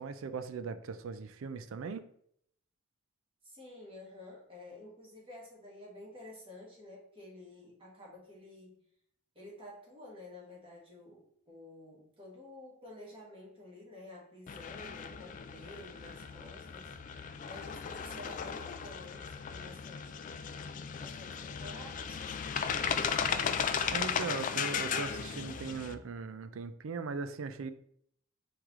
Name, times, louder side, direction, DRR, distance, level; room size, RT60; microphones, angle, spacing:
voice 1, 0.0-2.1 23.9-27.7, right 5 dB, 65° right, 11 dB, 0.4 m, -39 dB
voice 2, 3.4-8.8 9.3-20.7 21.0-23.2, left 1 dB, 25° right, -5 dB, 1.6 m, -51 dB
sound 1, 14.5-25.9, left 7 dB, 35° left, 0.3 m, -36 dB
4.6 x 3.2 x 3.6 m, 0.68 s
head